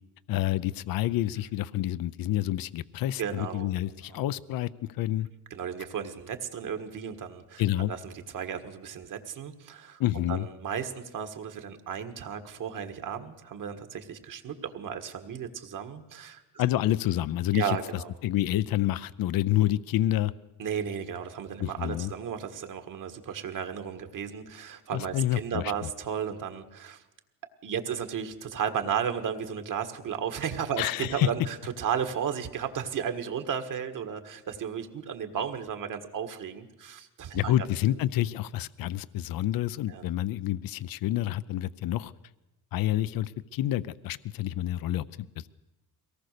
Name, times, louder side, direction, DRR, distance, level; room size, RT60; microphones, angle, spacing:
voice 1, 0.3-5.3 7.6-7.9 10.0-10.5 16.6-17.8 18.2-20.3 21.6-22.1 24.9-25.6 30.8-31.3 37.3-42.1 42.7-45.5, left 14 dB, 65° left, 17 dB, 0.6 m, -28 dB
voice 2, 3.2-4.2 5.5-16.6 17.5-18.1 20.6-27.0 27.6-37.6 37.9-38.0 39.9-40.1, right 7 dB, 55° right, 7 dB, 1.7 m, -34 dB
23.5 x 18.5 x 6.7 m, 1.0 s
cardioid pair, 155°, 38 cm